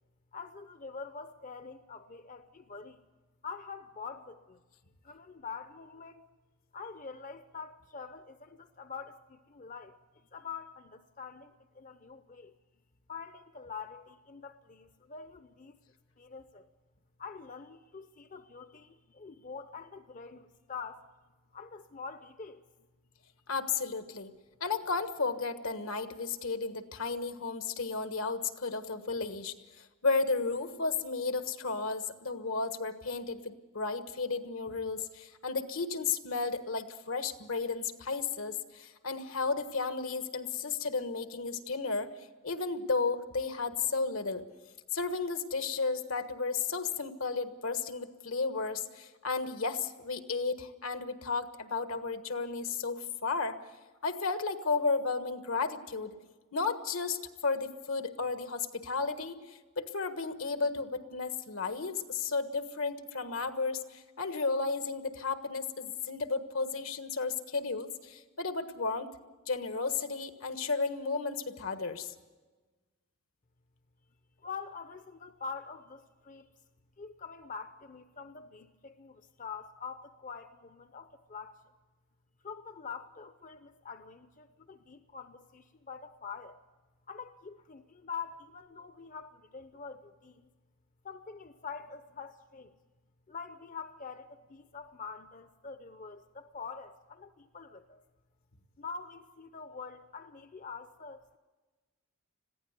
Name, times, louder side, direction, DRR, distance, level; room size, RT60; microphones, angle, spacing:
voice 1, 0.3-3.0 3.4-4.6 5.0-6.2 6.7-10.0 10.3-12.5 13.1-15.8 16.2-16.7 17.2-21.1 21.5-22.7 74.4-76.5 77.0-81.5 82.4-86.6 87.1-90.5 91.0-92.7 93.3-98.0 98.8-101.4, left 5 dB, 35° left, 10 dB, 0.7 m, -45 dB
voice 2, 23.5-24.3 24.6-42.1 42.4-44.4 44.9-53.6 54.0-56.1 56.5-69.1 69.5-72.1, left 4 dB, 75° left, 9 dB, 1.4 m, -33 dB
21.0 x 15.5 x 8.1 m, 1.3 s
head